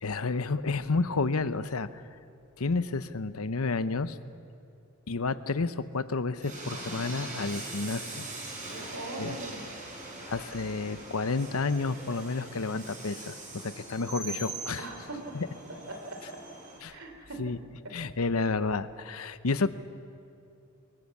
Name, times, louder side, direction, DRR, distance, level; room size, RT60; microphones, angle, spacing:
voice 1, 0.0-2.0 2.6-4.2 5.1-8.3 9.2-9.4 10.3-14.8 15.3-15.5 16.8-16.9 17.4-17.6 17.9-19.7, left 3 dB, 85° left, 13 dB, 0.9 m, -30 dB
Train, 6.4-16.8, right 2 dB, 35° right, 6.3 m, -42 dB
voice 2, 8.7-9.6 14.8-15.4 15.7-16.4 16.9-17.4 17.8-17.9, right 2 dB, 70° right, 4 dB, 3.6 m, -41 dB
24.5 x 22.0 x 7.3 m, 2.6 s
head